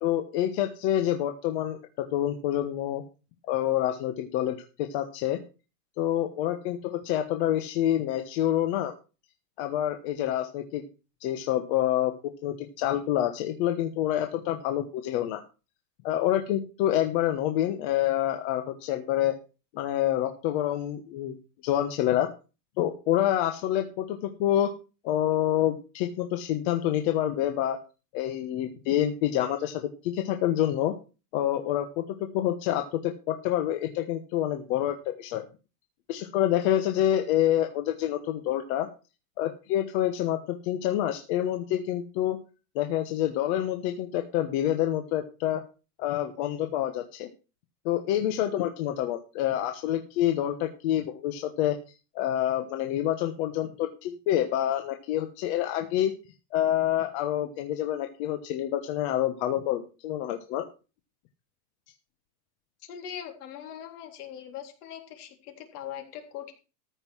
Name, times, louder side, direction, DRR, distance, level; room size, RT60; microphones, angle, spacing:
voice 1, 0.0-3.0 3.5-5.4 6.0-8.9 9.6-10.8 11.2-12.1 12.4-15.4 16.0-19.4 19.7-21.3 21.6-22.3 22.8-24.7 25.0-27.8 28.1-30.9 31.3-32.0 32.3-35.4 36.1-38.9 39.4-42.4 42.7-45.6 46.0-47.3 47.8-51.8 52.1-56.1 56.5-60.6, left 12 dB, 45° left, 6 dB, 1.2 m, -27 dB
voice 2, 62.8-66.5, left 9 dB, 65° left, 4 dB, 3.7 m, -41 dB
14.0 x 5.7 x 6.2 m, 0.33 s
supercardioid pair, 165°, 49 cm